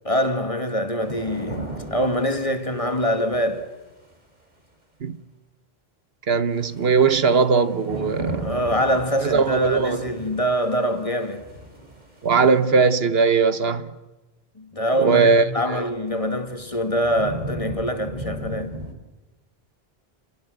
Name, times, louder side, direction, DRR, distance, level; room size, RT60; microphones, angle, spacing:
voice 1, 0.0-3.7 8.4-11.5 14.6-18.7, equal, 35° left, 2.2 m, -24 dB
sound 1, 1.0-4.1 6.5-12.8 15.4-15.5 16.1-18.9, right 1 dB, 45° right, 3.4 m, -37 dB
voice 2, 6.3-8.5 9.2-10.0 12.2-13.9 15.0-15.8, right 5 dB, 70° right, 1.3 m, -19 dB
29.0 x 22.0 x 8.0 m
omnidirectional pair, 1.0 m